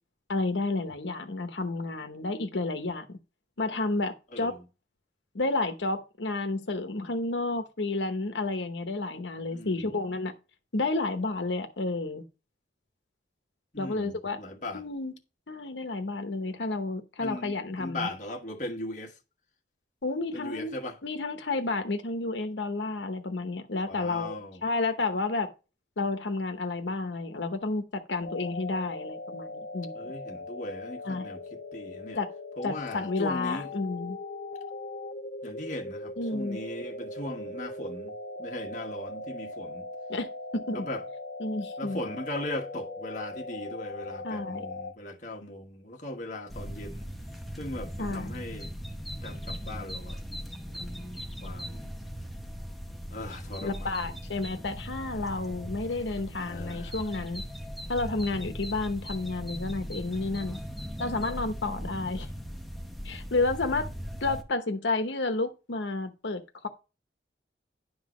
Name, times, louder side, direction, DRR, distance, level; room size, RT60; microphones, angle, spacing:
voice 1, 0.3-3.2 3.6-4.5 5.3-10.4 10.7-12.2 13.8-14.4 14.7-15.1 15.5-18.1 20.0-20.7 21.0-25.5 26.0-29.9 31.0-31.3 32.1-32.3 32.6-34.2 36.2-36.6 40.1-40.3 40.5-40.9 41.4-42.0 44.2-44.7 48.0-48.3 53.6-57.4 57.9-60.6 61.0-62.3 63.0-63.9 64.2-66.7, left 3 dB, 90° left, 0.9 m, -31 dB
voice 2, 4.3-4.6 9.5-9.9 13.7-14.8 17.2-19.2 20.3-21.0 23.9-24.6 29.9-32.2 32.6-33.7 35.4-38.1 38.4-39.9 40.7-41.0 41.8-47.1 47.6-48.7 49.2-50.2 50.7-52.0 53.1-54.2 56.3-57.0, left 1 dB, 45° left, 1.4 m, -39 dB
sound 1, 28.2-44.9, left 2 dB, 60° left, 1.1 m, -39 dB
sound 2, 46.5-64.4, equal, ahead, 0.8 m, -39 dB
10.5 x 3.9 x 6.1 m
head